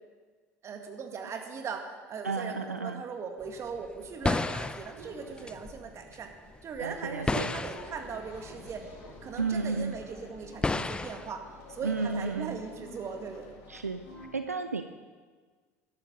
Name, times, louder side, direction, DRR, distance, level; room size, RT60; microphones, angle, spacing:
voice 1, 0.6-6.3 6.6-8.9 9.2-11.4 11.7-13.6, right 5 dB, 35° right, 5 dB, 2.0 m, -39 dB
voice 2, 2.2-3.0 6.8-7.5 9.4-10.0 11.8-12.6 13.7-14.0 14.3-14.8, right 4 dB, 85° right, 9 dB, 0.5 m, -32 dB
sound 1, 3.4-6.2 6.5-9.2 9.4-11.3, left 3 dB, 10° left, 0.6 m, -33 dB
sound 2, 5.0-12.6, right 2 dB, 60° right, 3.7 m, -53 dB
sound 3, 7.6-14.3, left 4 dB, 55° left, 2.4 m, -50 dB
13.0 x 12.0 x 6.6 m, 1.5 s
figure-of-eight pair, 70°, 8 cm